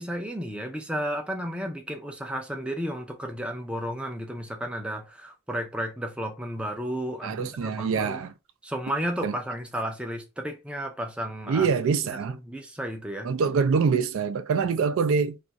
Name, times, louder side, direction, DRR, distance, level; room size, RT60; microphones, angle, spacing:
voice 1, 0.0-8.2 8.6-11.7 12.1-13.3, equal, 5° right, 0.4 m, -33 dB
voice 2, 7.2-8.3 9.2-9.3 11.5-12.4 13.2-15.4, right 5 dB, 70° right, 0.3 m, -25 dB
2.5 x 2.4 x 3.9 m
head